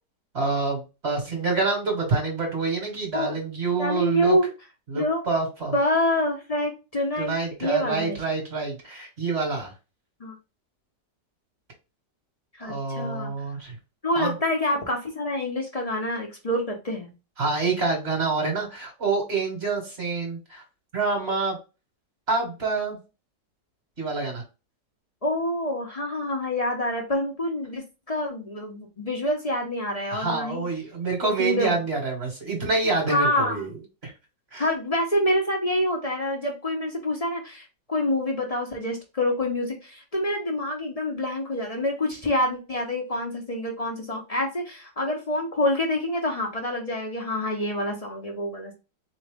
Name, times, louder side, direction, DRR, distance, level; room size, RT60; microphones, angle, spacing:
voice 1, 0.3-4.4 4.9-5.7 7.2-9.7 12.6-13.7 14.1-14.3 17.4-20.6 20.9-21.6 22.3-23.0 24.0-24.4 30.1-33.7 34.0-34.1 34.5-34.6, right 3 dB, 40° right, 1 dB, 1.4 m, -27 dB
voice 2, 3.8-4.5 4.9-5.2 5.7-8.2 10.2-10.3 12.5-13.3 14.0-17.1 25.2-30.6 31.4-31.8 33.1-33.7 34.6-48.7, left 1 dB, 30° left, 1 dB, 0.7 m, -27 dB
4.0 x 3.1 x 3.4 m, 0.29 s
omnidirectional pair, 1.9 m